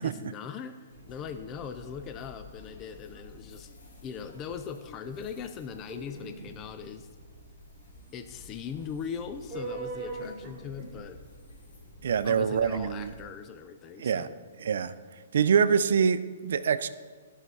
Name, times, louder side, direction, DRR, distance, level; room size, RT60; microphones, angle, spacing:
voice 1, 0.0-3.7 4.0-7.1 8.1-11.2 12.2-14.4, left 7 dB, 20° left, 8 dB, 0.4 m, -40 dB
sound 1, 0.9-13.2, left 1 dB, 75° left, 3.2 m, -51 dB
sound 2, 5.9-6.5 9.5-11.0, right 3 dB, 20° right, 2.2 m, -38 dB
voice 2, 12.0-13.1 14.0-14.3 14.6-14.9 15.3-16.9, right 7 dB, 70° right, 13 dB, 0.5 m, -25 dB
12.5 x 5.7 x 4.7 m, 1.5 s
hypercardioid pair, 160°, 0 cm